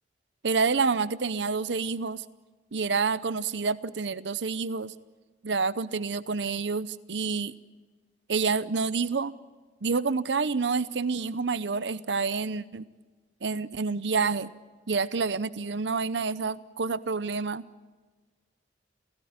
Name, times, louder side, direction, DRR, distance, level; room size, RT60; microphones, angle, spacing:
voice 1, 0.4-2.2 2.7-4.9 5.4-7.5 8.3-9.3 9.8-12.9 13.4-14.5 14.9-17.6, right 4 dB, 90° right, 17 dB, 0.7 m, -28 dB
28.5 x 17.5 x 9.5 m, 1.3 s
head